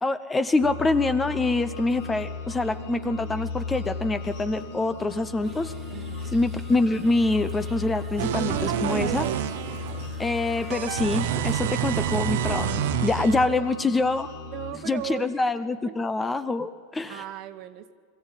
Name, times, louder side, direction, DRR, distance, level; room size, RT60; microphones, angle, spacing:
voice 1, 0.0-5.7 6.3-9.3 10.2-14.3 14.9-17.2, left 2 dB, 15° left, 12 dB, 0.8 m, -25 dB
sound 1, 0.6-14.7, left 4 dB, 70° left, 4.2 m, -35 dB
sound 2, 5.4-12.2, right 8 dB, 30° right, 1.7 m, -49 dB
voice 2, 5.9-6.3 13.3-13.7 14.5-15.4 15.8-16.0 17.1-17.9, right 11 dB, 50° right, 10 dB, 1.3 m, -38 dB
sound 3, 8.2-10.1 10.7-13.5, right 12 dB, 70° right, 0.9 m, -28 dB
22.0 x 14.5 x 9.1 m, 2.1 s
supercardioid pair, 130°, 0 cm